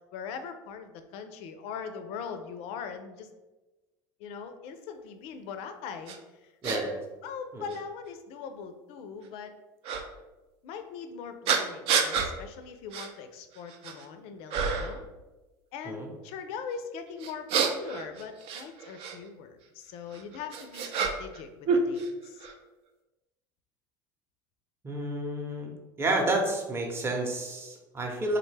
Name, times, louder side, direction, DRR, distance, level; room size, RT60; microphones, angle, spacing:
voice 1, 0.1-3.3 4.2-6.2 6.4-6.8 7.2-9.5 10.6-15.0 15.7-22.5, left 6 dB, 65° left, 8 dB, 0.4 m, -41 dB
sound 1, 6.1-6.2 6.6-6.8 7.7-7.8 9.8-10.0 11.5-12.3 12.9-13.1 13.5-14.1 14.5-15.0 17.2-19.2 20.1-21.4 21.7-22.5, right 5 dB, 60° right, 0.5 m, -28 dB
voice 2, 6.6-7.0 7.5-7.7 15.8-16.1 24.8-25.7 26.0-28.4, right 2 dB, 20° right, 0 dB, 0.7 m, -30 dB
3.5 x 2.2 x 3.2 m, 1.1 s
supercardioid pair, 95°, 11 cm